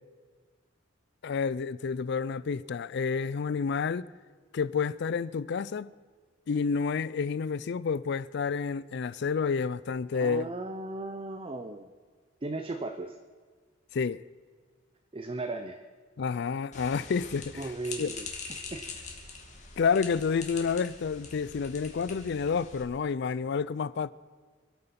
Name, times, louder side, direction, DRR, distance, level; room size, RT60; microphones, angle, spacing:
voice 1, 1.2-4.1 4.5-5.9 6.5-10.5 13.9-14.2 16.2-17.7 18.0-18.1 19.8-24.1, left 5 dB, 60° left, 0.4 m, -29 dB
voice 2, 10.1-11.9 12.4-13.2 15.1-15.8 17.5-19.0, right 2 dB, 30° right, 0.6 m, -37 dB
sound 1, 16.7-22.8, left 4 dB, 40° left, 2.2 m, -43 dB
26.5 x 8.9 x 5.9 m
head